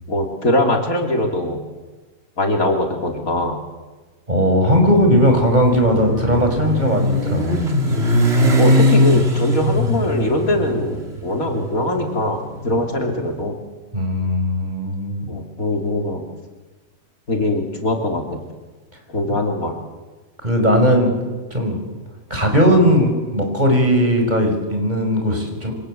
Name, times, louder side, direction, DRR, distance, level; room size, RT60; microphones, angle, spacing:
voice 1, 0.1-1.6 2.4-3.6 8.6-13.6 15.3-16.2 17.3-18.4 19.1-19.7, left 1 dB, 75° left, 2 dB, 3.7 m, -21 dB
voice 2, 4.3-7.7 13.9-15.2 19.3-19.4 20.4-21.1 21.5-21.8 22.3-25.7, equal, 30° right, 3 dB, 5.9 m, -17 dB
Motorcycle, 5.0-13.2, left 1 dB, 45° right, 2.8 m, -20 dB
27.5 x 25.5 x 7.9 m, 1.3 s
omnidirectional pair, 1.5 m